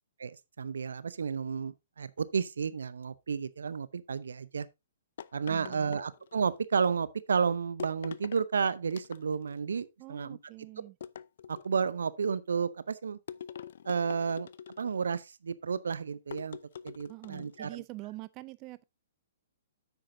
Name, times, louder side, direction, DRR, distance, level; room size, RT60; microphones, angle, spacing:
voice 1, 0.2-4.7 5.3-10.4 11.5-13.2 13.9-14.5 14.8-16.6 16.8-17.8, right 6 dB, 70° right, 0.7 m, -32 dB
sound 1, 5.2-6.6 7.8-8.5 8.9-9.6 11.0-11.9 13.3-15.1 16.3-17.6, left 8 dB, 60° left, 0.5 m, -45 dB
voice 2, 5.5-6.0 10.0-11.0 17.1-18.8, right 20 dB, 30° right, 0.4 m, -45 dB
9.9 x 8.1 x 2.7 m
figure-of-eight pair, 120°, 0 cm